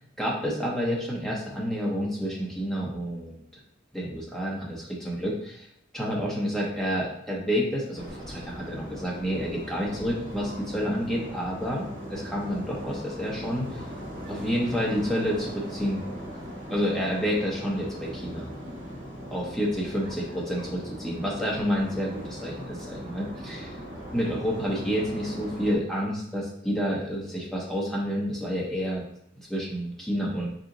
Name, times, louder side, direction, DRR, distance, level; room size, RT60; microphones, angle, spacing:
voice 1, 0.2-3.4 3.9-5.7 5.9-13.8 14.3-16.0 16.7-18.5 19.3-23.8 24.1-29.0 29.4-30.5, equal, 5° left, -4 dB, 0.9 m, -29 dB
sound 1, 7.9-25.8, equal, 70° right, 1.2 m, -39 dB
4.2 x 2.9 x 3.8 m, 0.72 s
head